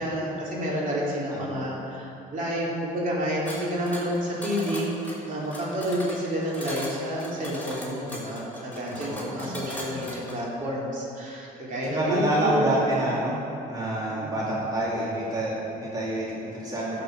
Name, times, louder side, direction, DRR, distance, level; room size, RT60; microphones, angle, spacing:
voice 1, 0.0-4.9 5.3-13.0 14.1-14.3, equal, 50° right, -5 dB, 3.0 m, -29 dB
voice 2, 1.3-1.6 8.9-10.1 11.9-13.4 13.7-17.0, right 1 dB, 20° right, -6 dB, 2.5 m, -28 dB
sound 1, 3.5-10.4, left 1 dB, 10° left, 2.9 m, -39 dB
12.5 x 6.8 x 6.1 m, 2.9 s
cardioid pair, 110°, 17 cm